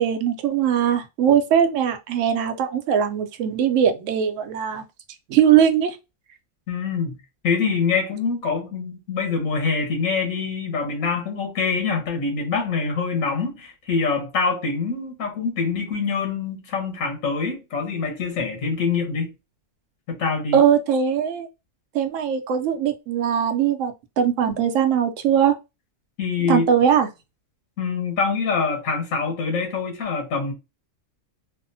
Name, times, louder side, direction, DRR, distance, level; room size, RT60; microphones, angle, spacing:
voice 1, 0.0-4.8 5.3-6.0 20.5-21.5 21.9-25.6 26.5-27.1, right 8 dB, 70° right, 0.9 m, -20 dB
voice 2, 6.7-7.2 7.4-19.3 20.1-20.6 26.2-26.7 27.8-30.5, left 5 dB, 85° left, 1.3 m, -25 dB
3.4 x 2.0 x 2.6 m
omnidirectional pair, 1.4 m